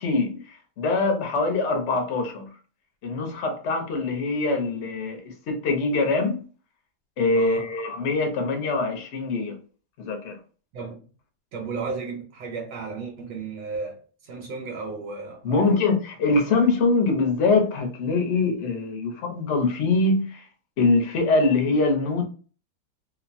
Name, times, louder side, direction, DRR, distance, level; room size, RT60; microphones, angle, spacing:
voice 1, 0.0-2.5 3.0-6.4 7.2-9.6 10.0-10.4 15.4-20.5 20.8-22.3, left 3 dB, 55° left, 0.8 m, -23 dB
voice 2, 7.3-7.7 10.7-11.1 11.5-15.9, right 4 dB, 80° right, 1.3 m, -34 dB
2.9 x 2.2 x 2.5 m
omnidirectional pair, 1.9 m